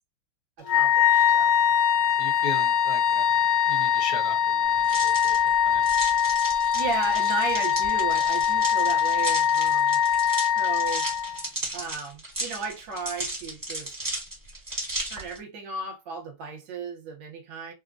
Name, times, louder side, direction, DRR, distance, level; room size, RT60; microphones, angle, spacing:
Wind instrument woodwind instrument, 0.6-11.4, left 8 dB, 90° left, 0.7 m, -22 dB
voice 1, 0.6-1.5 6.7-10.0 10.5-11.1 11.7-13.9 15.0-17.7, right 5 dB, 65° right, 1.4 m, -35 dB
voice 2, 2.2-5.9, left 4 dB, 65° left, 1.0 m, -38 dB
sound 1, 4.8-15.4, right 1 dB, 15° right, 0.9 m, -35 dB
3.7 x 2.1 x 2.5 m
omnidirectional pair, 2.4 m